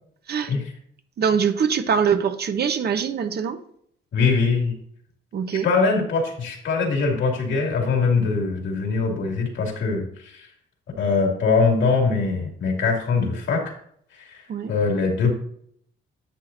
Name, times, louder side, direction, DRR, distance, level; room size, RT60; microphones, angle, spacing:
voice 1, 1.2-3.6 5.3-5.7 14.5-14.7, right 7 dB, 55° right, 8 dB, 1.0 m, -23 dB
voice 2, 4.1-4.7 5.6-10.5 11.0-13.6 14.2-14.4 14.7-15.3, left 4 dB, 70° left, 1 dB, 2.5 m, -22 dB
10.5 x 7.7 x 2.7 m, 0.65 s
cardioid pair, 90°, 20 cm